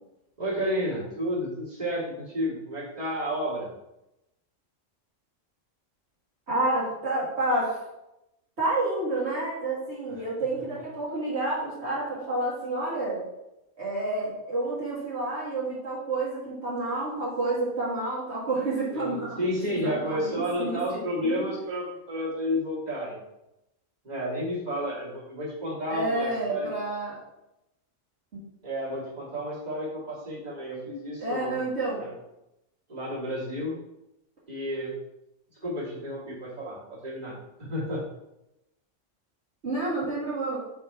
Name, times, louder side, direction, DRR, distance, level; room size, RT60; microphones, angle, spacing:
voice 1, 0.4-3.7 18.9-23.2 24.0-26.7 28.6-31.7 32.0-32.1 32.9-33.7 34.5-34.9 35.6-38.0, equal, 30° right, -8 dB, 2.1 m, -31 dB
voice 2, 6.5-7.8 8.6-13.2 13.8-19.4 19.7-21.4 25.9-27.2 28.3-28.4 31.2-32.0 39.6-40.6, right 2 dB, 55° right, -8 dB, 2.0 m, -29 dB
6.0 x 3.6 x 4.5 m, 0.90 s
omnidirectional pair, 1.3 m